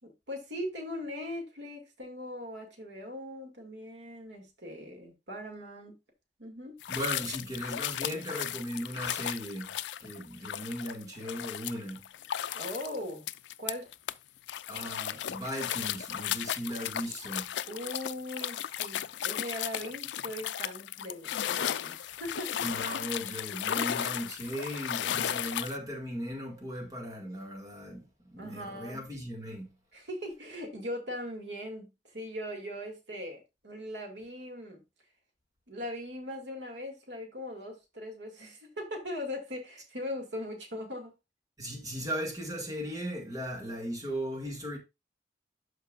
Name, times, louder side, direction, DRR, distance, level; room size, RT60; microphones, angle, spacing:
voice 1, 0.0-6.0 6.4-6.8 12.5-13.2 13.6-13.9 17.7-22.6 28.4-29.0 29.9-34.8 35.7-41.1, left 1 dB, 85° right, 2.1 m, -40 dB
sound 1, 6.8-14.1 14.5-25.8, left 10 dB, 85° left, 0.4 m, -35 dB
voice 2, 6.9-9.7 10.0-12.0 14.7-17.5 22.6-29.7 41.6-44.8, equal, 20° right, 2.0 m, -37 dB
12.5 x 4.6 x 2.4 m
head